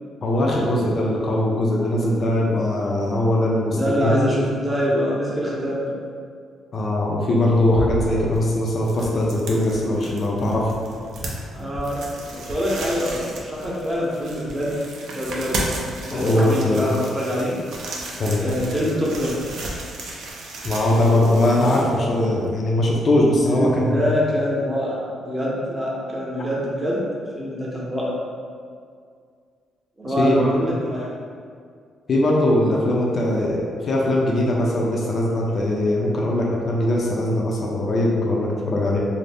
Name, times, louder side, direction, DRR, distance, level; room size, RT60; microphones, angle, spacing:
voice 1, 0.2-4.1 6.7-10.7 16.1-16.8 18.2-18.4 20.6-24.1 30.2-30.5 32.1-39.0, left 1 dB, 45° left, -3 dB, 0.4 m, -20 dB
voice 2, 3.7-6.0 11.5-14.7 15.1-15.8 16.1-17.5 18.4-19.4 23.5-27.0 27.3-28.1 30.0-31.1, equal, 15° right, -5 dB, 0.7 m, -25 dB
sound 1, 7.4-22.5, right 2 dB, 75° right, 0.4 m, -34 dB
2.5 x 2.0 x 3.3 m, 2.1 s
cardioid pair, 90°, 0 cm